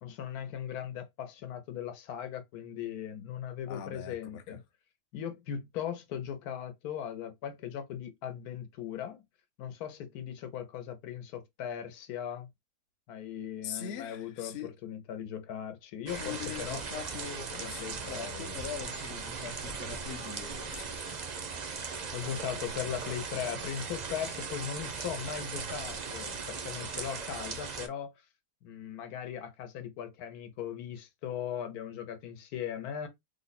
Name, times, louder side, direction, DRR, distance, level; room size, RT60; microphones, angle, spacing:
voice 1, 0.0-4.6 5.1-9.2 9.6-12.5 13.1-16.8 17.5-18.6 22.1-28.1 28.6-33.1, left 9 dB, 85° left, 1.2 m, -39 dB
voice 2, 3.7-4.6 13.6-14.7 16.1-21.1, left 8 dB, 60° left, 0.7 m, -42 dB
sound 1, 16.1-27.9, right 5 dB, 60° right, 0.4 m, -38 dB
3.4 x 2.1 x 3.9 m
omnidirectional pair, 1.6 m